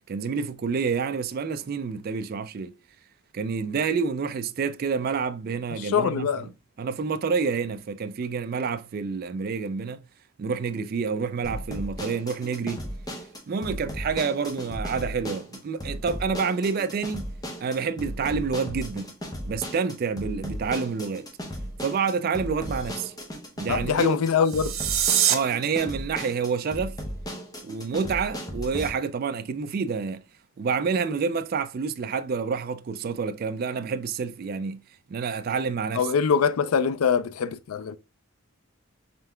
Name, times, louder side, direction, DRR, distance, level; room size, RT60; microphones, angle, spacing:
voice 1, 0.1-2.7 3.3-10.0 10.4-12.9 13.5-17.3 17.6-19.1 19.4-21.3 21.8-23.1 23.6-24.2 25.3-27.0 27.6-30.2 30.6-34.8 35.1-36.1, right 5 dB, 45° right, 0.3 m, -28 dB
voice 2, 5.9-6.5 23.7-24.7 36.0-38.0, left 6 dB, 90° left, 0.4 m, -23 dB
sound 1, 11.4-28.9, equal, 20° left, 0.7 m, -36 dB
sound 2, 24.4-25.4, right 10 dB, 75° right, 0.7 m, -23 dB
5.2 x 3.2 x 2.2 m
head